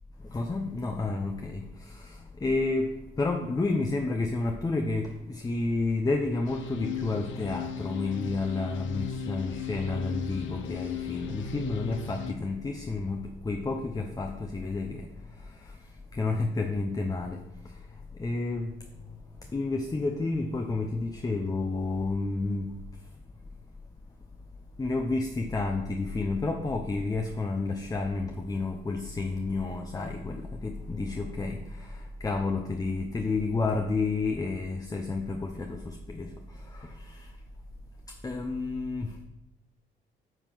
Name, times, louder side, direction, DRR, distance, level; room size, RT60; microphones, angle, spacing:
voice 1, 0.3-15.1 15.4-15.8 16.1-17.8 18.2-18.7 19.5-22.7 24.8-36.3 36.7-37.3 38.2-39.3, left 3 dB, 20° left, 4 dB, 0.7 m, -30 dB
sound 1, 6.5-12.3, left 7 dB, 75° left, 0.8 m, -36 dB
9.1 x 3.6 x 6.1 m, 0.98 s
cardioid pair, 90°, 20 cm